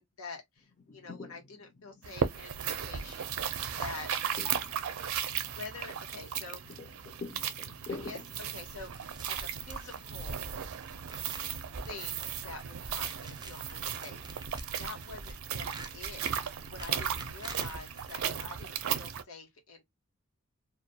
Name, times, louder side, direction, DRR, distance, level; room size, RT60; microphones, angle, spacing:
voice 1, 0.0-4.1 5.6-6.8 7.9-10.4 11.9-14.3 14.8-15.7 15.9-19.8, left 3 dB, 80° left, 1.0 m, -47 dB
sound 1, 0.6-10.4, left 3 dB, 35° left, 0.5 m, -49 dB
sound 2, 2.0-19.2, right 8 dB, 85° right, 0.4 m, -36 dB
sound 3, 8.7-18.8, right 2 dB, 20° right, 0.4 m, -47 dB
2.2 x 2.2 x 2.6 m
head